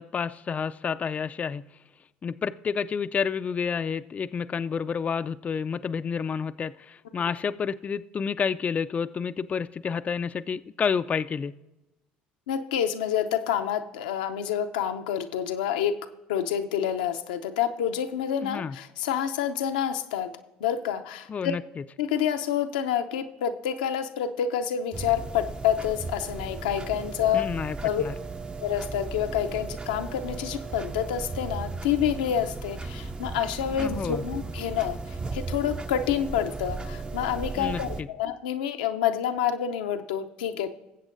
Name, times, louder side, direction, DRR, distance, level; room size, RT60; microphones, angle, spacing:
voice 1, 0.0-1.8 2.2-11.5 18.4-18.8 21.3-21.8 27.3-28.1 33.8-34.3 37.6-38.1, left 6 dB, 35° left, 0.3 m, -30 dB
voice 2, 12.5-16.0 16.3-20.3 20.6-21.5 22.0-27.5 27.8-28.0 28.6-40.7, left 9 dB, 85° left, 0.5 m, -28 dB
sound 1, 24.9-38.0, right 3 dB, 20° right, 0.6 m, -36 dB
19.5 x 7.9 x 2.6 m
hypercardioid pair, 65°, 4 cm